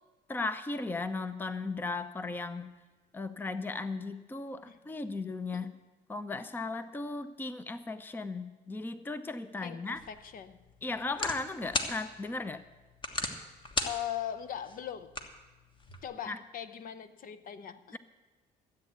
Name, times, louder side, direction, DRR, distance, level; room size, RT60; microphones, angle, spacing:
voice 1, 0.3-2.7 3.1-5.7 6.1-10.0 10.8-12.6 16.3-16.4, left 3 dB, 10° left, 0.6 m, -36 dB
voice 2, 9.6-10.6 13.8-15.2 16.0-18.0, left 10 dB, 55° left, 0.8 m, -40 dB
sound 1, 9.9-16.0, left 2 dB, 30° left, 1.4 m, -39 dB
13.5 x 8.2 x 8.1 m
cardioid pair, 110°, 17 cm